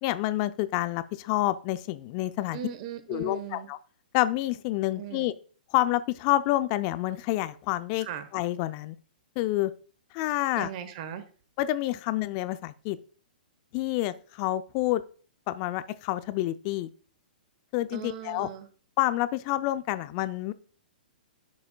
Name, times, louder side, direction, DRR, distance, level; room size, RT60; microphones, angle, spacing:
voice 1, 0.0-2.6 3.1-3.8 4.1-5.3 5.7-8.1 8.3-9.0 9.4-9.7 10.1-10.7 11.6-13.0 13.7-15.0 15.5-16.9 17.7-18.5 19.0-20.5, left 16 dB, 35° left, 13 dB, 0.5 m, -28 dB
voice 2, 2.5-3.7 4.9-5.3 8.0-8.3 10.5-11.2 17.9-18.7, right 9 dB, 45° right, 11 dB, 1.2 m, -38 dB
11.0 x 6.3 x 2.3 m, 0.41 s
hypercardioid pair, 120°, 5 cm